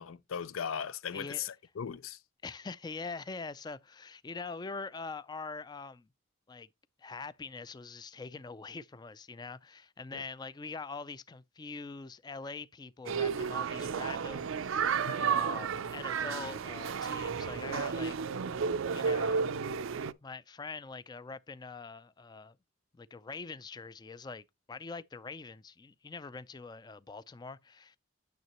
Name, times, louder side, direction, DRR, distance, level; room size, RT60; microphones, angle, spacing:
voice 1, 0.0-2.2 10.1-10.2 15.0-15.1, left 7 dB, 85° left, 0.5 m, -38 dB
voice 2, 1.1-1.5 2.4-6.1 6.5-6.7 7.0-18.2 18.9-19.5 20.2-22.6 22.9-28.0, left 4 dB, 20° left, 0.3 m, -43 dB
sound 1, 13.1-20.1, right 6 dB, 75° right, 0.5 m, -32 dB
9.4 x 6.4 x 3.0 m
head